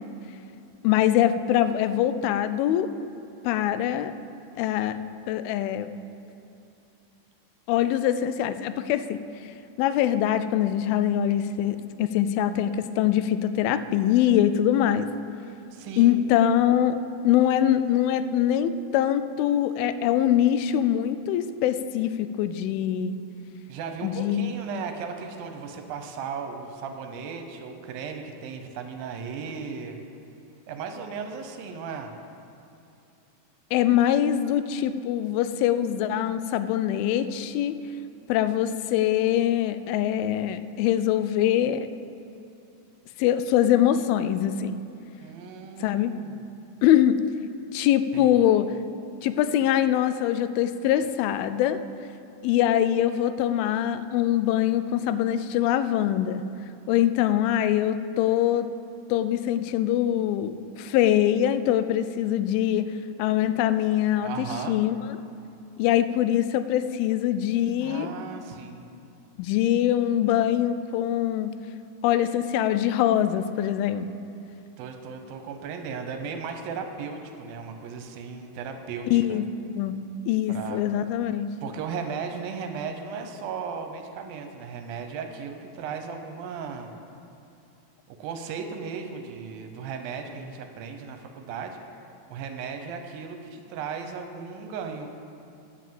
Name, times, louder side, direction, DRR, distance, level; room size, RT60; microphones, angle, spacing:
voice 1, 0.8-2.9 3.4-4.1 4.6-5.0 5.3-5.9 7.7-9.2 9.8-15.1 16.0-17.0 17.2-23.2 24.0-24.5 33.7-37.7 38.3-41.9 43.2-44.8 45.8-46.1 46.8-47.2 47.7-48.7 49.2-51.8 52.4-56.4 56.9-58.7 59.1-62.9 63.2-65.0 65.8-68.1 69.4-71.5 72.0-74.1 79.1-79.4 79.8-80.0 80.3-81.5, left 11 dB, 85° left, 12 dB, 2.4 m, -23 dB
voice 2, 15.7-16.3 23.7-30.0 30.7-32.1 45.2-46.4 48.1-48.3 64.2-64.8 67.8-68.9 74.8-79.5 80.5-80.8 81.6-86.9 88.1-91.8 92.3-95.1, right 5 dB, 80° right, 5 dB, 2.5 m, -36 dB
10.5 x 7.7 x 7.7 m, 2.7 s
omnidirectional pair, 4.3 m